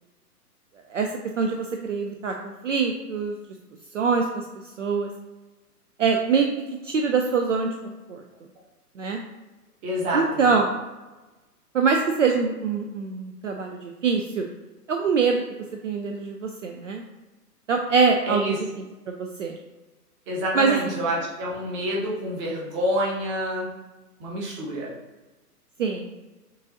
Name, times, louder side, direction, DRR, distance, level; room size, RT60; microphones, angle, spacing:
voice 1, 0.9-3.4 3.9-4.5 4.8-5.1 6.0-6.5 6.8-8.2 9.0-9.2 10.1-10.7 11.7-14.4 14.9-15.4 15.8-17.0 17.7-18.5 19.1-19.6 20.5-20.9 25.8-26.1, right 5 dB, 55° right, 3 dB, 0.5 m, -24 dB
voice 2, 9.8-10.5 18.3-18.6 20.3-23.7 24.2-24.9, equal, 20° right, -3 dB, 0.9 m, -27 dB
6.6 x 2.5 x 2.7 m, 1.2 s
figure-of-eight pair, 120°, 47 cm